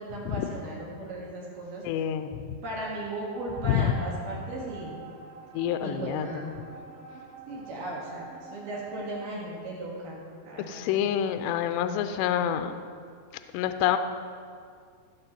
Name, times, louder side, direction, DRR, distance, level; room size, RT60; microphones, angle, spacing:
voice 1, 0.0-1.8 2.6-4.9 5.8-6.6 7.5-11.0, right 1 dB, 60° right, -4 dB, 2.9 m, -36 dB
voice 2, 1.8-2.6 3.6-3.9 5.5-6.3 10.7-12.7 13.5-14.0, left 10 dB, 85° left, 9 dB, 2.6 m, -27 dB
sound 1, 3.3-9.3, right 3 dB, 80° right, 2.1 m, -46 dB
15.5 x 7.5 x 4.3 m, 2.2 s
omnidirectional pair, 5.3 m